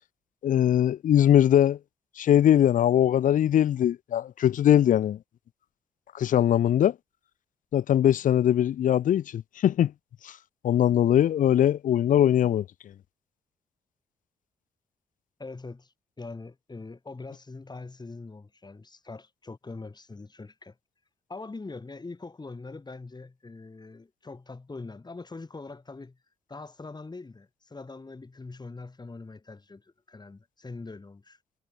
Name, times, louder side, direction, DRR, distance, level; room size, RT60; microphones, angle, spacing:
voice 1, 0.4-1.8 2.2-5.2 6.1-6.9 7.7-9.9 10.2-10.3 10.6-12.6, left 10 dB, 65° left, 0.6 m, -21 dB
voice 2, 15.4-20.7 21.3-26.2 26.5-31.4, left 3 dB, 30° left, 5.7 m, -42 dB
supercardioid pair, 60°, 15 cm